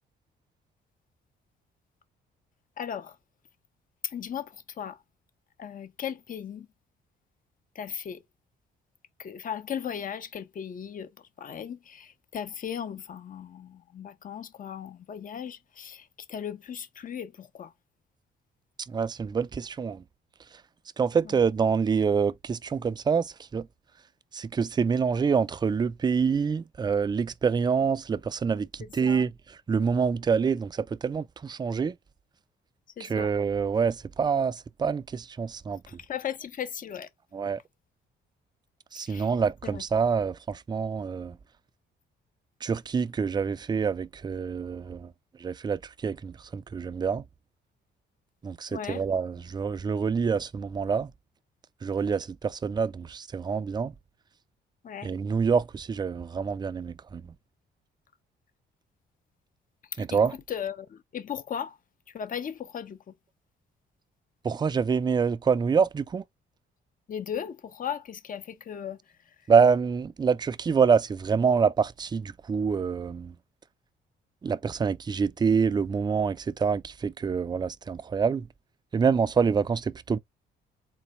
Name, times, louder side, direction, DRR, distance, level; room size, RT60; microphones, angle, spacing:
voice 1, 2.8-3.2 4.0-5.0 5.6-6.7 7.7-8.2 9.2-11.1 11.4-17.7 21.2-21.4 28.8-29.2 33.0-33.3 35.9-37.1 39.0-39.3 39.6-39.8 48.7-49.0 54.8-55.1 59.9-61.8 62.1-63.1 67.1-69.0 69.3-69.4, left 8 dB, 45° left, 0.6 m, -37 dB
voice 2, 18.9-20.0 21.0-23.7 24.3-29.3 29.7-32.0 33.0-35.8 37.3-37.6 38.9-41.4 42.6-45.1 45.4-47.2 48.4-51.1 51.8-53.9 55.0-57.3 60.0-60.4 64.4-66.2 69.5-73.3 74.4-78.5 78.9-80.2, right 6 dB, 20° right, 0.3 m, -26 dB
3.9 x 2.2 x 4.3 m
cardioid pair, 90°, 20 cm